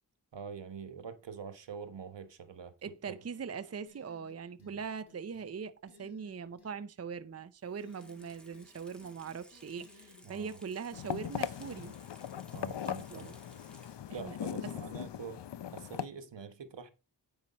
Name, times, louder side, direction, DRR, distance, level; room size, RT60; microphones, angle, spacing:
voice 1, 0.3-3.2 4.6-4.8 10.2-10.5 12.5-13.3 14.1-15.4 15.7-16.9, right 6 dB, 80° right, 1.3 m, -45 dB
voice 2, 2.8-11.9 12.9-13.3 14.1-14.7, right 6 dB, 35° right, 0.6 m, -41 dB
sound 1, 3.9-4.8 5.1-5.5 5.9-6.7 7.8-8.7 9.0-10.6, left 5 dB, 60° left, 2.5 m, -61 dB
Water tap faucet / Sink (filling or washing), 7.6-14.3 14.7-14.8, equal, ahead, 2.0 m, -59 dB
sound 2, 10.9-16.1, left 10 dB, 75° left, 0.6 m, -39 dB
9.2 x 5.6 x 4.2 m
cardioid pair, 55°, 42 cm